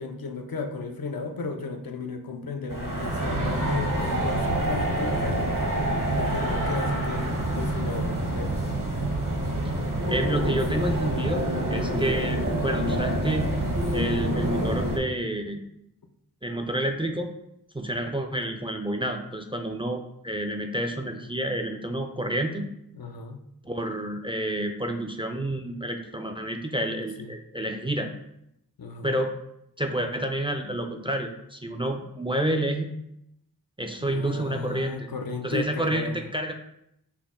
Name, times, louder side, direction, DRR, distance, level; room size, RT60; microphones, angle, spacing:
voice 1, 0.0-5.9 6.1-8.6 22.9-23.4 27.2-27.3 28.8-29.2 34.0-36.2, left 4 dB, 70° left, 5 dB, 0.6 m, -35 dB
sound 1, 2.7-15.0, right 1 dB, 60° right, 0.9 m, -27 dB
voice 2, 10.1-11.4 11.7-13.5 13.9-15.6 16.4-17.3 17.7-22.7 23.6-28.1 29.0-29.3 29.8-32.9 33.8-35.1 35.4-36.5, right 1 dB, 15° right, 4 dB, 0.4 m, -29 dB
5.8 x 2.1 x 3.6 m, 0.79 s
wide cardioid pair, 50°, 37 cm